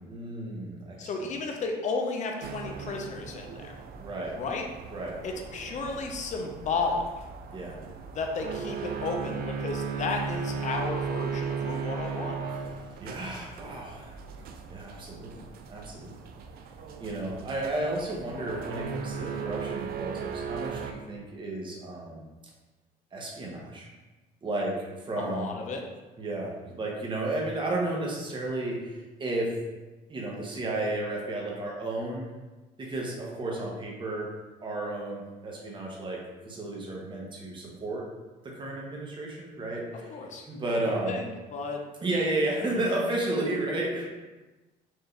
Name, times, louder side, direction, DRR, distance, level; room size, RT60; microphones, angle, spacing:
voice 1, 0.0-1.4 4.0-4.3 4.9-5.2 7.5-7.8 13.0-14.2 14.7-15.4 15.7-16.1 17.0-22.2 23.1-23.9 24.4-25.5 26.2-29.6 30.1-32.3 32.8-34.3 34.6-38.1 38.4-40.2 40.5-41.2 42.0-44.0, right 2 dB, 30° right, -2 dB, 1.0 m, -33 dB
voice 2, 1.0-3.7 4.3-4.7 5.2-7.1 8.1-12.4 25.2-25.8 40.1-40.4 40.8-41.8 42.6-42.9, left 4 dB, 45° left, 2 dB, 0.6 m, -33 dB
sound 1, 2.4-20.9, right 6 dB, 65° right, 0.4 m, -37 dB
4.6 x 2.6 x 3.2 m, 1.2 s
cardioid pair, 110°, 17 cm